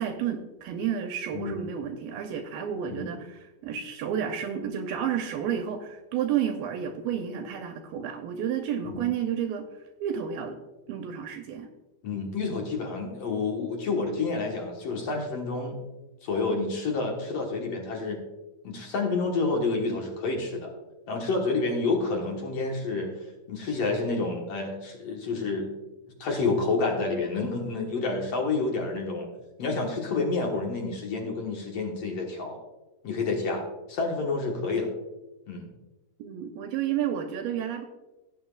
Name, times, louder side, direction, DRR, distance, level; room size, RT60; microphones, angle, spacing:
voice 1, 0.0-9.7 10.0-10.6 10.9-11.7 36.2-37.9, right 8 dB, 80° right, 4 dB, 2.4 m, -31 dB
voice 2, 1.3-1.7 2.9-3.1 8.9-9.1 12.0-15.8 16.2-18.2 18.6-20.7 21.1-23.1 23.5-25.7 26.2-29.3 29.6-32.6 33.0-34.9 35.5-35.7, left 3 dB, 60° left, 1 dB, 1.7 m, -29 dB
16.0 x 8.7 x 2.4 m, 1.1 s
omnidirectional pair, 4.5 m